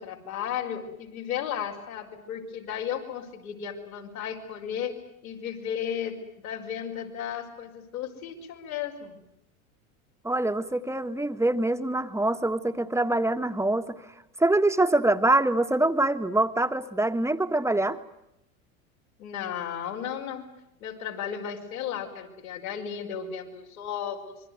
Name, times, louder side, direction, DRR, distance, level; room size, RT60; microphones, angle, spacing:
voice 1, 0.0-5.0 5.2-6.2 6.4-9.2 19.2-20.5 20.8-24.4, left 8 dB, 75° left, 1 dB, 5.3 m, -34 dB
voice 2, 10.2-14.0 14.4-18.0, right 2 dB, 5° right, 8 dB, 1.6 m, -24 dB
26.5 x 23.5 x 9.5 m, 0.83 s
hypercardioid pair, 85°, 43 cm